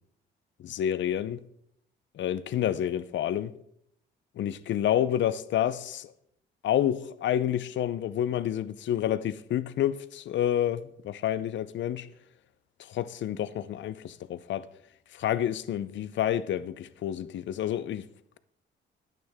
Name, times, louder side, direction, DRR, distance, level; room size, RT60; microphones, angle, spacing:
voice 1, 0.6-1.4 2.1-3.5 4.4-6.1 6.6-12.1 12.9-14.7 15.1-18.0, left 11 dB, 70° left, 0.7 m, -29 dB
13.5 x 9.3 x 3.6 m
cardioid pair, 90°, 20 cm